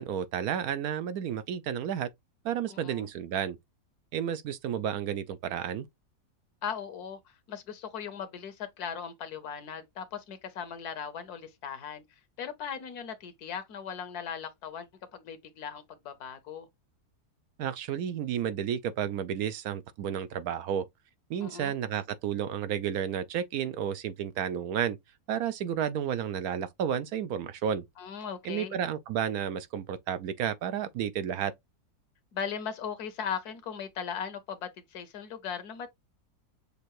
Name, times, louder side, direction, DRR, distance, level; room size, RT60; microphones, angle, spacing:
voice 1, 0.0-2.1 2.4-3.6 4.1-5.9 17.6-20.8 21.3-25.0 25.3-27.8 28.4-31.5, right 9 dB, 70° right, 1.0 m, -32 dB
voice 2, 2.7-3.1 6.6-7.2 7.5-12.0 12.4-16.7 21.4-21.7 28.0-28.8 32.3-35.9, left 7 dB, 70° left, 1.3 m, -38 dB
6.6 x 2.6 x 3.0 m
omnidirectional pair, 1.7 m